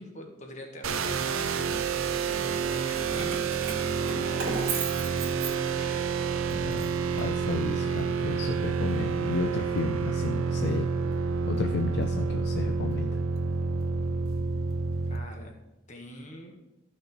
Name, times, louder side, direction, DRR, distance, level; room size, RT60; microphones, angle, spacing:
voice 1, 0.0-3.6 4.0-6.1 15.0-15.5 15.9-16.6, equal, 35° left, 2 dB, 1.4 m, -45 dB
sound 1, 0.8-15.2, right 5 dB, 80° right, 0.6 m, -29 dB
Keys jangling, 2.9-6.1 6.5-7.8, right 4 dB, 65° right, 2.5 m, -37 dB
voice 2, 6.5-6.9 7.2-10.9 11.5-13.1, left 3 dB, 50° left, 7 dB, 0.4 m, -32 dB
14.0 x 6.1 x 3.2 m, 1.0 s
head